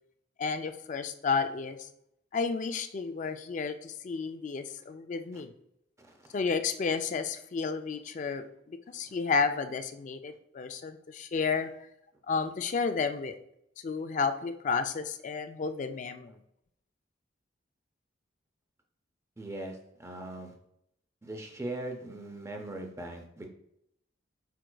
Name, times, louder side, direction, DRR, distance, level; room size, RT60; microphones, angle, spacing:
voice 1, 0.4-1.8 2.3-5.5 6.3-11.7 12.3-13.4 13.8-16.4, left 5 dB, 40° left, 9 dB, 0.3 m, -32 dB
voice 2, 19.4-20.5 21.2-23.5, right 1 dB, 15° right, 3 dB, 0.5 m, -40 dB
4.8 x 4.5 x 2.3 m, 0.77 s
head